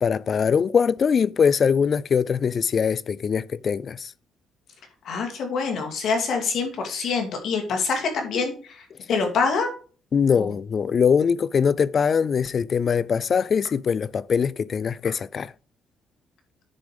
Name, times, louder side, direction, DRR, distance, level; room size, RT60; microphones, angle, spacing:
voice 1, 0.0-4.1 10.1-15.5, left 6 dB, 50° left, 0.4 m, -22 dB
voice 2, 5.0-9.7 10.4-10.5, left 5 dB, 70° left, 2.5 m, -26 dB
9.7 x 5.0 x 5.0 m
cardioid pair, 90°, 0 cm